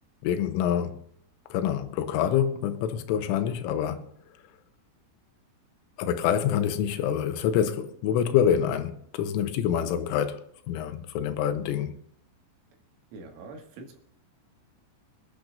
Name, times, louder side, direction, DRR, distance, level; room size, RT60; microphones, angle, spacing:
voice 1, 0.2-1.0 1.5-4.1 6.0-10.4 10.7-11.9, left 9 dB, 90° left, 3.4 m, -26 dB
voice 2, 13.1-14.0, right 3 dB, 85° right, 4.4 m, -44 dB
26.5 x 10.5 x 2.6 m
omnidirectional pair, 5.7 m